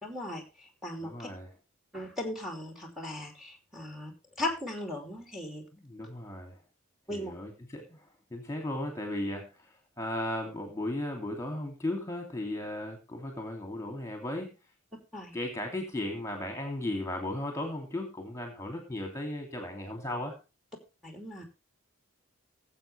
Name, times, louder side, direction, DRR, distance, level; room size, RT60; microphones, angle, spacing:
voice 1, 0.0-1.3 1.9-5.6 7.1-7.3 15.1-15.4 21.0-21.4, left 1 dB, ahead, 3 dB, 2.8 m, -38 dB
voice 2, 1.0-1.5 5.7-6.6 7.1-8.0 8.3-14.5 15.3-20.4, left 1 dB, 15° left, 3 dB, 2.7 m, -36 dB
19.5 x 8.0 x 3.3 m, 0.30 s
head